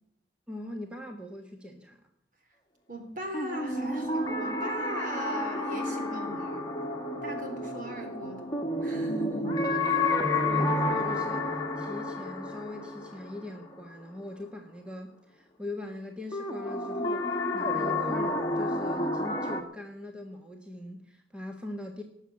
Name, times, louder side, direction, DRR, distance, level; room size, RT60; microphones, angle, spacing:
voice 1, 0.5-2.0 9.8-9.9 10.4-22.0, left 2 dB, 5° right, 3 dB, 1.3 m, -41 dB
voice 2, 2.9-6.7 7.2-8.5 8.8-10.0, right 1 dB, 45° right, 4 dB, 3.8 m, -39 dB
sound 1, 3.3-14.2 16.3-19.6, left 2 dB, 20° left, 1.6 m, -30 dB
19.0 x 7.3 x 8.8 m, 0.77 s
head